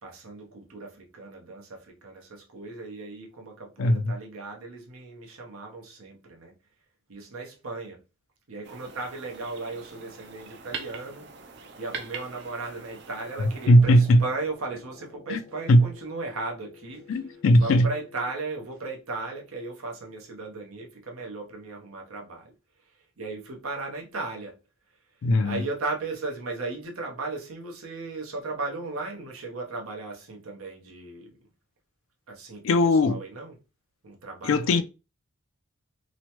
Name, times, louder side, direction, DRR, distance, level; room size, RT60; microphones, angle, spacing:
voice 1, 0.0-6.5 7.1-8.0 8.5-11.3 11.8-17.2 17.5-22.6 23.2-24.6 25.4-31.3 32.3-33.6 34.0-34.8, right 3 dB, 85° right, 0.8 m, -36 dB
voice 2, 3.8-4.1 13.7-14.2 15.3-15.4 15.7-15.8 17.1-17.9 25.2-25.6 32.6-33.2 34.4-34.8, left 1 dB, 70° left, 0.3 m, -19 dB
sound 1, 8.6-13.7, right 5 dB, 55° right, 0.4 m, -42 dB
Feedback Reverb, 13.4-18.3, left 3 dB, 10° left, 0.5 m, -51 dB
3.0 x 2.1 x 2.9 m
head